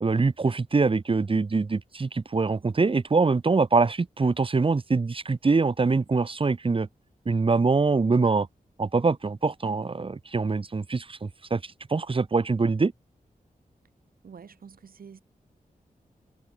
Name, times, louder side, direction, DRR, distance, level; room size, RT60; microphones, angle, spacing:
voice 1, 0.0-6.9 7.2-8.5 8.8-12.9, right 4 dB, 40° right, 1.6 m, -24 dB
voice 2, 9.7-10.2 14.2-15.2, right 6 dB, 85° right, 3.7 m, -48 dB
wide cardioid pair, 115°, 15 cm